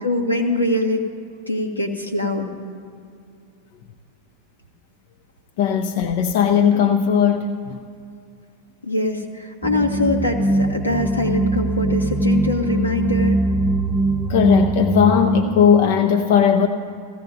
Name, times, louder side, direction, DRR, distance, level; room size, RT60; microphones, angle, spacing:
voice 1, 0.0-1.1 1.5-2.5 8.9-13.4, left 2 dB, 85° left, 2 dB, 1.2 m, -23 dB
voice 2, 5.6-7.8 14.3-16.7, left 8 dB, 50° left, 6 dB, 0.6 m, -17 dB
sound 1, 9.6-15.4, right 1 dB, 5° right, 0.6 m, -21 dB
17.5 x 15.0 x 2.7 m, 2.4 s
figure-of-eight pair, 90°, 0 cm